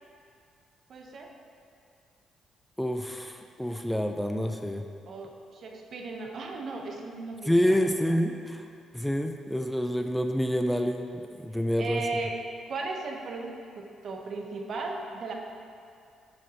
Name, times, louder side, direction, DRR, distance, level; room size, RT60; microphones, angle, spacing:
voice 1, 0.9-1.3 5.1-7.8 11.8-12.4 12.7-15.3, right 3 dB, 55° right, 2 dB, 0.8 m, -36 dB
voice 2, 2.8-4.8 7.5-8.6 8.9-12.0, equal, 5° left, 5 dB, 0.3 m, -27 dB
7.4 x 6.4 x 2.9 m, 2.4 s
cardioid pair, 90°, 0 cm